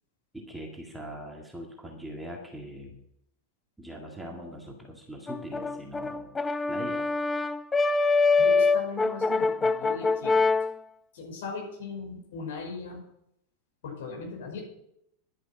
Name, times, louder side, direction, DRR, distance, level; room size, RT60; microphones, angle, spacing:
voice 1, 0.3-3.0 3.8-6.3 6.7-7.1, equal, 5° right, 1 dB, 2.1 m, -41 dB
Brass instrument, 5.3-10.7, left 4 dB, 15° left, 0.4 m, -24 dB
voice 2, 8.4-10.4 11.1-13.0 13.8-14.6, left 4 dB, 55° left, 0 dB, 5.9 m, -38 dB
11.5 x 10.5 x 5.9 m, 0.77 s
figure-of-eight pair, 90°, 0 cm